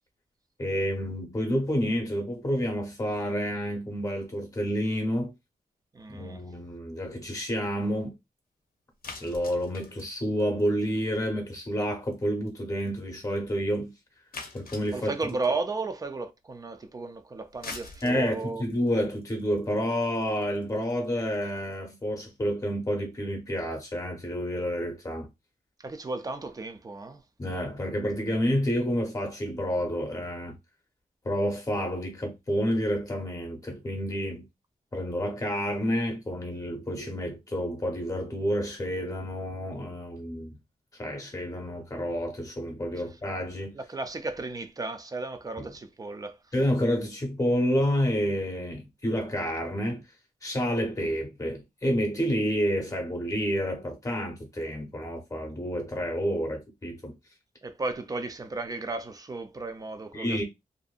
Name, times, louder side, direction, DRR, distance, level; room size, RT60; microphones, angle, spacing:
voice 1, 0.6-5.3 6.1-8.1 9.2-13.9 14.5-15.1 18.0-25.3 27.4-30.6 31.2-34.4 34.9-40.6 41.0-43.8 46.5-50.0 50.4-57.1 60.1-60.4, equal, 20° left, 0.8 m, -29 dB
voice 2, 5.9-6.4 14.9-18.6 25.8-27.2 43.7-46.4 57.6-60.4, right 3 dB, 25° right, 0.3 m, -34 dB
sound 1, 9.0-11.3 11.5-11.8 12.1-12.2 12.5-12.6 12.9-13.0 13.4-13.5 14.3-15.6 17.4-21.7, left 4 dB, 90° left, 0.6 m, -44 dB
2.6 x 2.5 x 2.3 m
wide cardioid pair, 155°, 15 cm